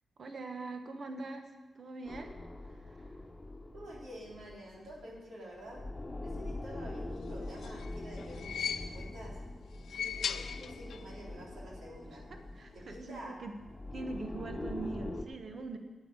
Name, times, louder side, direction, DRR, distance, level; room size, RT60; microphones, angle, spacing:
voice 1, 0.2-2.4 2.8-3.1 12.1-12.2 12.5-13.5 13.9-15.8, right 3 dB, 60° right, 5 dB, 1.3 m, -42 dB
sound 1, 2.1-5.2 5.5-15.2, left 2 dB, 20° left, 1.3 m, -44 dB
voice 2, 3.7-5.8 6.2-9.4 9.9-12.2 12.7-13.4, right 1 dB, 85° right, -4 dB, 3.6 m, -49 dB
sound 2, 7.3-9.3 9.7-11.2 11.4-11.5 12.6-12.7, left 8 dB, 85° left, 0.4 m, -39 dB
9.5 x 9.2 x 6.8 m, 1.2 s
cardioid pair, 70°, 0 cm